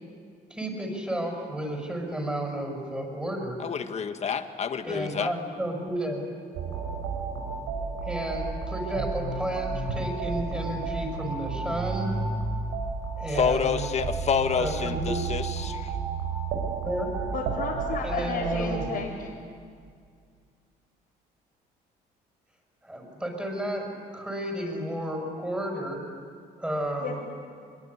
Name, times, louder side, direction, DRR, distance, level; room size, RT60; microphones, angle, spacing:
voice 1, 0.5-3.6 4.8-6.2 8.0-12.1 13.2-13.8 14.5-15.3 16.8-17.1 18.0-19.0 22.8-26.0 26.6-27.1, right 1 dB, 5° right, 1 dB, 6.4 m, -32 dB
voice 2, 3.6-5.3 13.3-16.0, left 7 dB, 40° left, 8 dB, 1.6 m, -28 dB
sound 1, 6.5-18.9, right 4 dB, 85° right, 5.7 m, -32 dB
voice 3, 17.3-19.1 27.0-27.2, left 5 dB, 70° left, -6 dB, 3.9 m, -33 dB
23.0 x 22.5 x 9.8 m, 2.1 s
cardioid pair, 110°, 17 cm